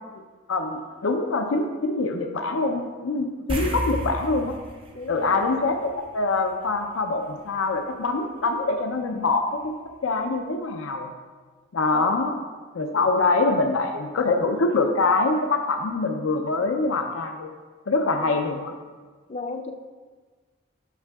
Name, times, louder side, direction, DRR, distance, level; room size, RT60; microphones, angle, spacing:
voice 1, 0.5-4.5 5.1-9.7 10.0-11.1 11.7-12.3 12.7-17.5 17.9-18.7, left 3 dB, 85° left, 4 dB, 0.5 m, -24 dB
sound 1, 3.5-6.3 6.6-6.8 9.6-9.7 10.1-10.2, equal, 25° right, 0.5 m, -32 dB
voice 2, 4.9-5.3 11.9-12.1 12.9-13.0 18.2-18.4 19.3-19.7, left 3 dB, 35° left, 5 dB, 0.4 m, -36 dB
8.1 x 5.9 x 2.3 m, 1.4 s
head